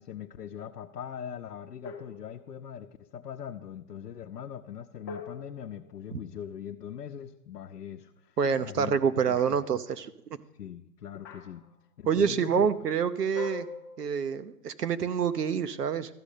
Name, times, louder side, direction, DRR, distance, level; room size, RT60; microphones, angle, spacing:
voice 1, 0.0-9.0 9.2-9.6 10.6-11.6 12.0-12.6, left 9 dB, 85° left, 3 dB, 0.8 m, -41 dB
sound 1, 1.8-2.8 5.1-6.8 9.4-9.8 11.2-11.7 13.4-14.6, left 5 dB, 15° left, 0.4 m, -44 dB
voice 2, 8.4-10.1 12.1-13.7 14.0-16.1, right 7 dB, 90° right, 11 dB, 0.9 m, -27 dB
13.0 x 5.2 x 8.4 m, 0.79 s
hypercardioid pair, 135°, 46 cm